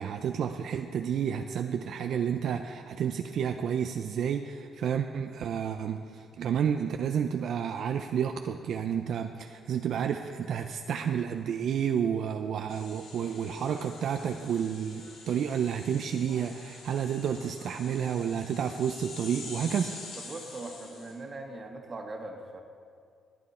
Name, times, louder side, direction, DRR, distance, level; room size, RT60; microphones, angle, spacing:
voice 1, 0.0-19.9, right 8 dB, 70° right, 6 dB, 0.5 m, -30 dB
sound 1, 12.7-21.2, left 3 dB, 75° left, 2.8 m, -46 dB
voice 2, 20.2-22.6, right 2 dB, 40° right, 3 dB, 1.7 m, -40 dB
19.0 x 9.3 x 4.3 m, 2.3 s
cardioid pair, 90°, 0 cm